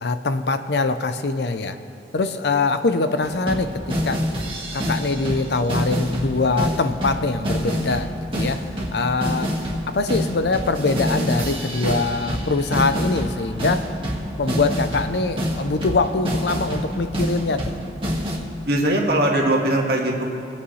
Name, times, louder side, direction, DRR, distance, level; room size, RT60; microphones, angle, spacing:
voice 1, 0.0-1.8 2.1-4.2 4.7-8.6 8.9-9.5 9.9-13.9 14.4-17.7, left 3 dB, 65° left, 10 dB, 0.6 m, -23 dB
sound 1, 3.2-18.4, equal, 30° right, 1.8 m, -27 dB
voice 2, 18.6-20.3, right 1 dB, 60° right, 0 dB, 1.7 m, -20 dB
22.5 x 8.5 x 3.2 m, 2.7 s
head